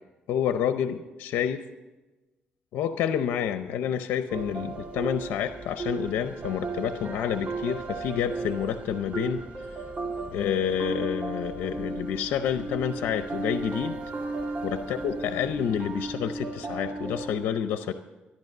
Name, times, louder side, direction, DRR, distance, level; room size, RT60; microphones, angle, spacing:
voice 1, 0.3-1.6 2.7-9.4 10.3-14.0 14.6-17.9, left 9 dB, 85° left, 9 dB, 0.6 m, -29 dB
sound 1, 4.3-17.3, right 3 dB, 35° right, 2.5 m, -35 dB
13.5 x 11.0 x 6.6 m, 1.1 s
cardioid pair, 90°, 4 cm